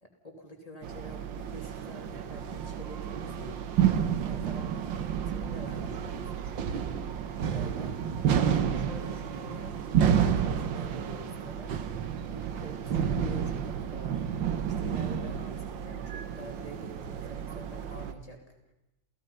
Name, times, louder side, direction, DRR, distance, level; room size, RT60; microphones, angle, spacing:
voice 1, 0.0-3.6 4.2-7.2 7.5-8.0 8.4-11.8 12.3-14.2 14.7-18.4, equal, 15° left, 2 dB, 3.2 m, -47 dB
sound 1, 0.8-18.1, right 8 dB, 70° right, 1.8 m, -30 dB
29.5 x 16.0 x 5.7 m, 0.89 s
omnidirectional pair, 2.2 m